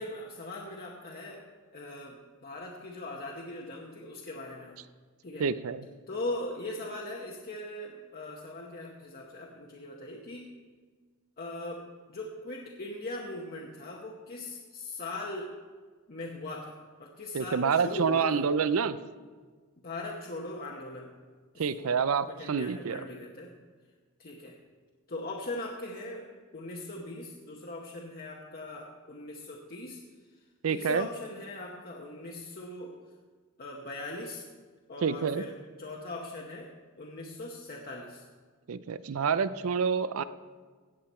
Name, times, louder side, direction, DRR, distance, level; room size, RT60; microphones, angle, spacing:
voice 1, 0.0-1.5 1.7-4.8 5.2-5.5 6.1-10.5 11.4-15.5 16.1-18.5 19.8-21.2 21.5-23.6 24.2-24.6 25.1-30.0 30.3-33.0 33.6-34.4 34.9-38.3, left 2 dB, 45° left, -1 dB, 1.0 m, -40 dB
voice 2, 5.4-5.8 17.3-19.0 21.6-23.0 30.6-31.1 35.0-35.4 38.7-40.2, right 6 dB, 70° right, 15 dB, 0.5 m, -28 dB
17.0 x 7.7 x 4.3 m, 1.5 s
head